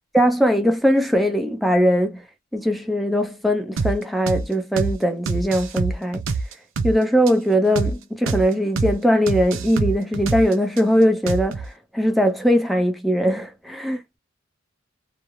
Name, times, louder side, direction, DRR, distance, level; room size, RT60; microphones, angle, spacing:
voice 1, 0.1-2.2 2.5-6.2 6.8-14.2, equal, ahead, 0.6 m, -20 dB
sound 1, 3.8-4.0 4.3-4.5 4.8-5.0 5.3-7.0 7.3-7.4 7.8-8.0 8.3-8.5 8.8-9.0 9.3-10.8 11.3-11.7, right 4 dB, 75° right, 0.5 m, -25 dB
2.4 x 2.1 x 3.0 m
head